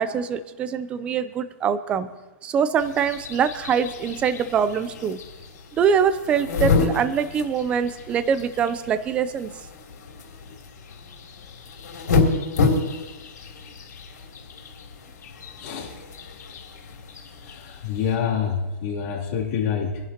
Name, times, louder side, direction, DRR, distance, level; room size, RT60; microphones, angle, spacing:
voice 1, 0.0-2.1 2.4-5.2 5.7-9.5, right 7 dB, 10° right, 13 dB, 0.5 m, -24 dB
sound 1, 2.8-18.2, left 4 dB, 80° left, 3.2 m, -29 dB
voice 2, 15.6-15.9 17.4-20.0, left 7 dB, 35° left, -4 dB, 3.0 m, -27 dB
24.0 x 11.0 x 2.9 m, 1.1 s
hypercardioid pair, 165°, 9 cm